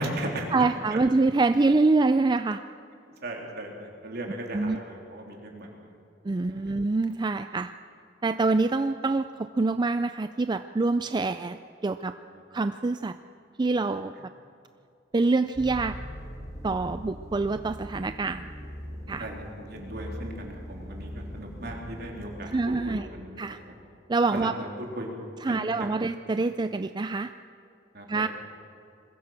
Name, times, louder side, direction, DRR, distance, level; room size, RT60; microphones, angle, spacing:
voice 1, 0.0-0.5 0.9-1.0 3.2-5.7 6.4-6.7 12.3-12.4 14.1-14.2 19.2-22.5 22.9-23.4 23.7-23.8 24.3-24.7 25.0-25.1 25.5-25.9 27.9-28.2, right 1 dB, 60° right, 0 dB, 3.6 m, -37 dB
voice 2, 0.5-2.6 4.5-4.8 6.2-7.7 8.2-12.2 12.5-13.2 13.6-14.1 15.1-16.0 16.6-18.5 19.1-19.3 22.5-23.1 23.4-23.6 24.1-24.5 25.4-27.3 28.1-28.3, right 3 dB, 25° right, 10 dB, 0.4 m, -25 dB
sound 1, 15.5-22.8, equal, 15° left, 1.7 m, -41 dB
22.0 x 15.5 x 7.5 m, 2.5 s
head